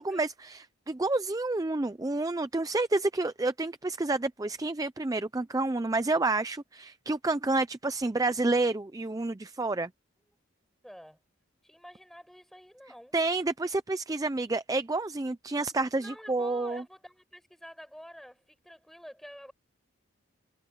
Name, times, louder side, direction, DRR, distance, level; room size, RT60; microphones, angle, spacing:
voice 1, 0.0-9.9 13.1-16.8, right 2 dB, 15° right, 0.4 m, -29 dB
voice 2, 10.8-11.2 11.6-13.2 15.9-19.5, equal, ahead, 6.8 m, -49 dB
head